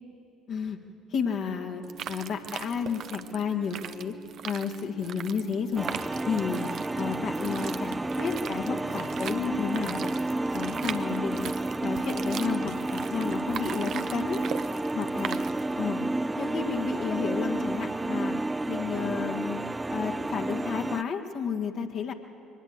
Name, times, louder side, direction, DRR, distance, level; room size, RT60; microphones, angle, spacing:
voice 1, 1.1-1.8 2.1-4.1 4.4-5.9 6.3-6.7 6.9-10.2 10.5-11.5 11.8-14.4 14.9-15.4 15.8-16.0 16.3-18.3 18.7-19.6 19.9-22.1, left 6 dB, 50° left, 3 dB, 1.8 m, -32 dB
sound 1, 1.8-15.9, right 9 dB, 50° right, 0.7 m, -40 dB
sound 2, 5.8-21.0, right 2 dB, 15° right, 0.4 m, -31 dB
22.5 x 19.5 x 8.1 m, 2.7 s
figure-of-eight pair, 50°, 0 cm